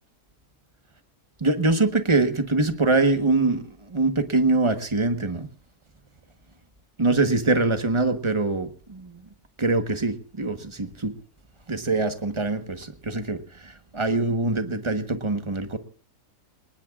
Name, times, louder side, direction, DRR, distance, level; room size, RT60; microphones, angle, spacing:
voice 1, 1.4-5.5 7.0-9.2 9.6-11.1 11.7-15.8, right 3 dB, 20° right, 7 dB, 1.1 m, -24 dB
27.0 x 19.0 x 2.4 m, 0.40 s
omnidirectional pair, 1.7 m